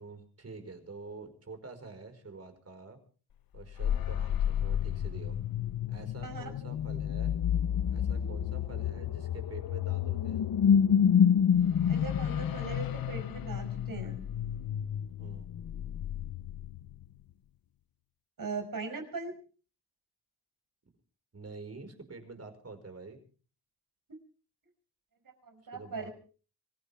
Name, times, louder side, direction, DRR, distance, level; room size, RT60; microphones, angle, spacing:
voice 1, 0.0-3.0 3.5-5.4 5.9-7.4 7.9-10.4 15.2-15.5 21.3-23.2 25.7-26.1, right 3 dB, 40° right, 7 dB, 5.2 m, -47 dB
sound 1, 3.6-17.0, left 8 dB, 60° left, 0.8 m, -29 dB
voice 2, 6.2-6.7 11.9-14.3 18.4-19.3 24.1-24.2 25.4-26.1, right 4 dB, 55° right, 5 dB, 5.9 m, -40 dB
26.0 x 16.0 x 3.5 m, 0.40 s
cardioid pair, 85°, 39 cm